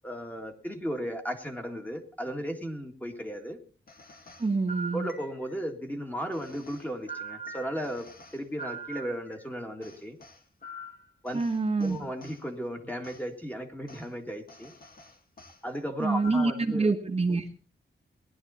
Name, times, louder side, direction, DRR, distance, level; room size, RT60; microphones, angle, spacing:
voice 1, 0.0-3.6 4.9-8.1 8.3-10.2 11.2-11.4 11.8-14.7 15.6-16.9, equal, 10° left, 3 dB, 1.9 m, -35 dB
sound 1, 3.9-5.6 6.3-9.5 9.8-12.4 13.0-13.2 13.9-14.1 14.5-15.6 16.1-16.8, right 2 dB, 45° left, 2.3 m, -44 dB
voice 2, 4.4-5.1 11.3-12.0 16.0-17.4, right 3 dB, 30° right, 3 dB, 1.4 m, -26 dB
19.0 x 11.5 x 4.2 m, 0.38 s
wide cardioid pair, 175°, 21 cm